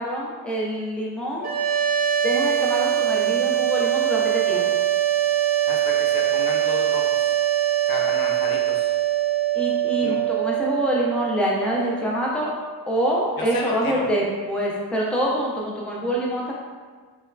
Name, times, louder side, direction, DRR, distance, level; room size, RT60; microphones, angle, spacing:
voice 1, 0.0-1.5 2.2-4.6 9.5-12.5 12.9-16.5, right 1 dB, 5° left, -4 dB, 0.3 m, -25 dB
sound 1, 1.4-12.5, right 11 dB, 45° right, 0.6 m, -23 dB
voice 2, 5.7-7.3 7.9-8.9 10.0-10.2 13.4-14.1, left 3 dB, 65° left, 0 dB, 0.5 m, -32 dB
3.0 x 2.2 x 2.2 m, 1.5 s
wide cardioid pair, 145°, 40 cm